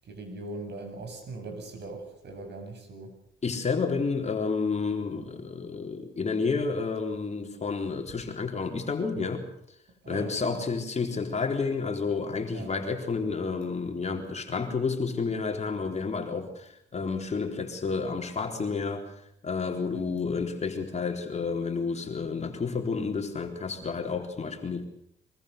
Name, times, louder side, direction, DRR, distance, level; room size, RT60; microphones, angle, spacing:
voice 1, 0.0-3.2 10.0-10.6 12.5-12.7 19.9-20.1, right 2 dB, 60° right, 6 dB, 7.8 m, -40 dB
voice 2, 3.4-9.5 10.1-19.1 19.4-24.8, left 4 dB, 35° left, 3 dB, 3.9 m, -30 dB
24.0 x 22.5 x 6.7 m, 0.74 s
cardioid pair, 90°, 20 cm